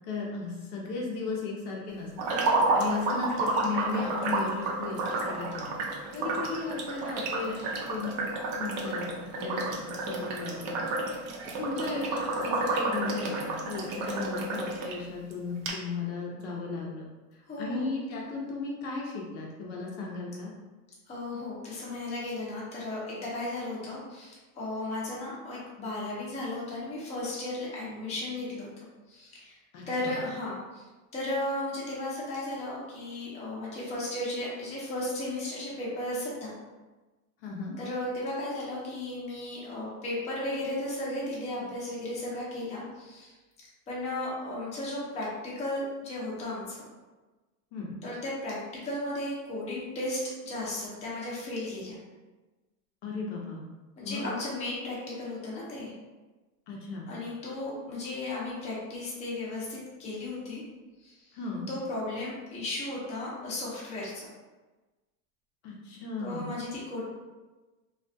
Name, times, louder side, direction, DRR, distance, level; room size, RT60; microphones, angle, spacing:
voice 1, 0.1-5.8 6.1-8.2 8.6-10.8 11.6-17.1 17.6-20.5 29.7-30.2 37.4-37.7 47.7-48.0 53.0-53.6 54.0-54.3 56.7-57.1 61.3-61.7 65.6-66.5, left 4 dB, 55° left, -2 dB, 0.6 m, -35 dB
sound 1, 2.2-14.9 15.3-15.4 15.7-15.8, right 2 dB, 45° right, 0.6 m, -30 dB
voice 2, 17.5-17.9 21.1-28.7 29.1-29.6 29.9-30.8 31.1-36.5 37.8-43.4 43.9-46.8 48.0-48.6 48.8-52.0 54.0-55.9 57.1-60.6 61.0-64.3 66.2-67.0, left 1 dB, 15° left, -6 dB, 0.6 m, -35 dB
2.3 x 2.2 x 2.6 m, 1.2 s
supercardioid pair, 130°, 43 cm